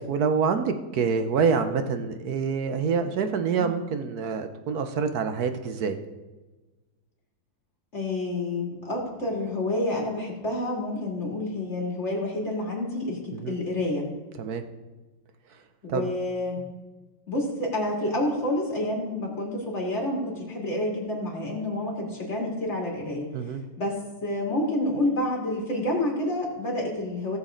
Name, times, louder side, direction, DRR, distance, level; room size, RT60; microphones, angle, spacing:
voice 1, 0.1-6.0 13.3-13.6 14.4-14.6 15.9-16.1 23.3-23.6, right 5 dB, 60° right, 8 dB, 1.2 m, -26 dB
voice 2, 7.9-13.2 13.5-14.0 15.8-16.6 17.3-23.3 23.8-23.9 24.2-27.4, left 1 dB, 35° left, -2 dB, 3.0 m, -28 dB
18.0 x 7.2 x 3.9 m, 1.2 s
omnidirectional pair, 2.1 m